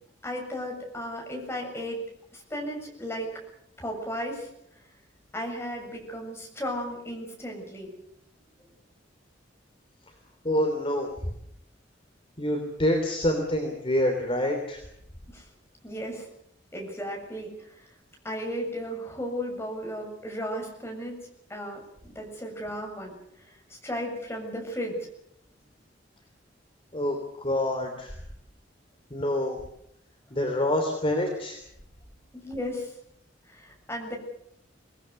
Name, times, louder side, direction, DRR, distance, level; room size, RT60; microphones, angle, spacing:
voice 1, 0.2-2.0 2.3-3.3 3.8-4.5 5.3-7.9 15.3-15.4 15.8-16.3 16.7-17.6 18.2-21.2 21.5-23.1 23.7-25.0 32.3-32.9 33.5-34.2, equal, 15° left, 1 dB, 7.2 m, -35 dB
voice 2, 10.4-11.1 12.4-14.8 26.9-28.1 29.1-29.6 30.3-31.6, left 1 dB, 30° left, 2 dB, 3.3 m, -26 dB
26.0 x 19.0 x 6.6 m, 0.75 s
head